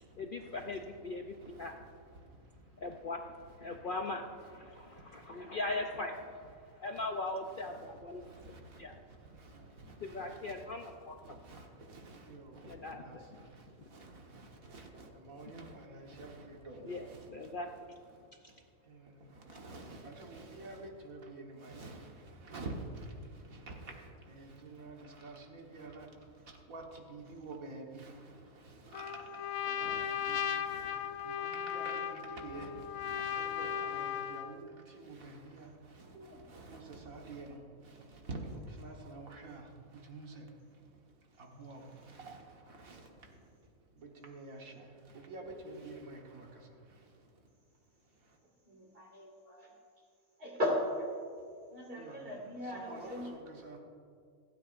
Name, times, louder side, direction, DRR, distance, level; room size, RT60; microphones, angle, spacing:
voice 1, 0.2-1.7 2.8-3.2 3.6-9.0 10.0-11.4 12.6-13.2 16.8-17.7 18.4-18.5 19.5-19.6, left 2 dB, 55° left, 4 dB, 0.6 m, -40 dB
voice 2, 4.7-5.5 8.2-10.6 11.2-17.5 18.1-18.3 18.9-40.5 41.4-43.4 44.0-47.1 52.0-53.8, right 2 dB, 80° right, 1 dB, 1.9 m, -49 dB
Trumpet, 28.9-34.6, left 9 dB, 80° left, 1.0 m, -37 dB
voice 3, 48.7-49.6 50.4-50.8 51.7-53.3, left 1 dB, 40° right, -1 dB, 2.6 m, -37 dB
27.0 x 9.2 x 2.5 m, 2.3 s
omnidirectional pair, 1.5 m